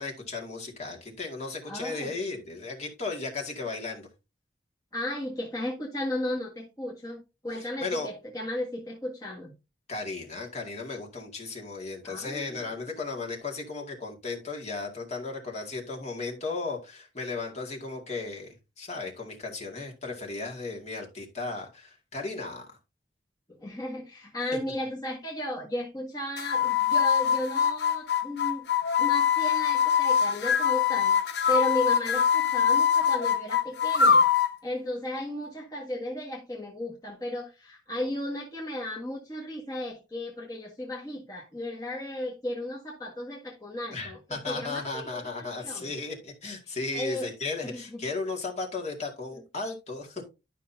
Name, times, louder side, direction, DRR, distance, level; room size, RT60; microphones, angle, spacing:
voice 1, 0.0-4.1 7.6-8.1 9.9-18.5 18.8-22.8 43.9-50.2, left 3 dB, 35° left, 2.1 m, -35 dB
voice 2, 1.7-2.1 4.9-9.5 12.0-12.7 23.5-28.7 29.0-34.2 34.6-45.9 46.9-47.3 47.6-48.0 49.3-49.4, left 1 dB, 20° left, 1.7 m, -35 dB
sound 1, 26.4-34.6, left 7 dB, 65° left, 0.8 m, -23 dB
12.0 x 5.9 x 2.7 m
head